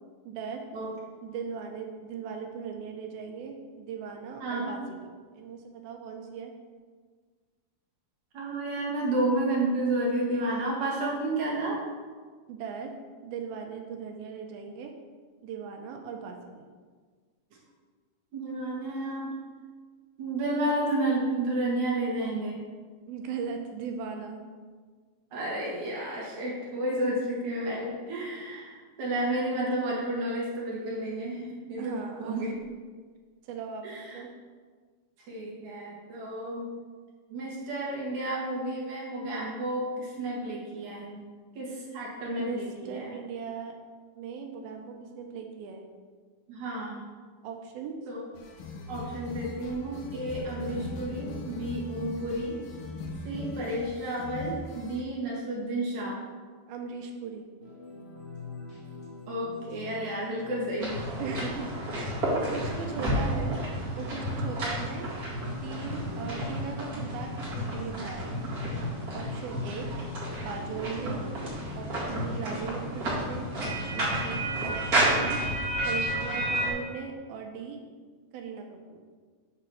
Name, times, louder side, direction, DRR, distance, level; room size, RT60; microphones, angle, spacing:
voice 1, 0.3-0.6 1.2-6.5 12.5-12.9 13.2-14.9 15.4-16.7 23.1-24.4 31.8-32.5 33.4-34.3 42.4-43.8 44.1-45.9 47.4-48.0 56.7-57.5 61.2-61.7 61.9-62.2 62.5-63.6 63.9-65.1 65.6-68.4 69.1-69.9 70.4-71.2 71.7-75.4 75.8-77.8 78.3-79.0, right 6 dB, 80° right, 3 dB, 2.5 m, -38 dB
voice 2, 4.4-4.7 8.3-11.8 18.3-19.4 20.2-22.6 25.3-32.5 33.8-34.2 35.3-36.7 37.3-41.2 41.6-43.1 46.5-47.0 48.1-48.2 48.9-52.6 53.2-56.2 59.3-61.0, right 1 dB, 55° right, -4 dB, 2.6 m, -31 dB
sound 1, 48.3-55.0, left 2 dB, 80° left, 1.8 m, -39 dB
sound 2, 57.6-76.5, left 3 dB, 35° left, 0.9 m, -44 dB
sound 3, 60.8-76.7, right 1 dB, 35° right, 1.6 m, -31 dB
8.3 x 3.9 x 6.1 m, 1.5 s
omnidirectional pair, 4.5 m